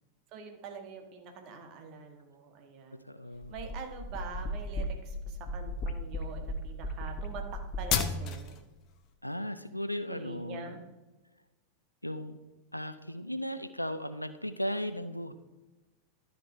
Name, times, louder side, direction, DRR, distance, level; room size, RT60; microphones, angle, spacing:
voice 1, 0.3-3.0 3.5-8.6 10.1-10.8, right 5 dB, 40° right, 4 dB, 1.6 m, -45 dB
voice 2, 3.1-3.5 9.2-10.7 12.0-12.4 12.7-15.3, equal, 90° left, 11 dB, 0.5 m, -36 dB
sound 1, 3.4-8.6, left 3 dB, 35° left, 0.8 m, -34 dB
12.0 x 5.3 x 4.4 m, 1.1 s
figure-of-eight pair, 90°, 0 cm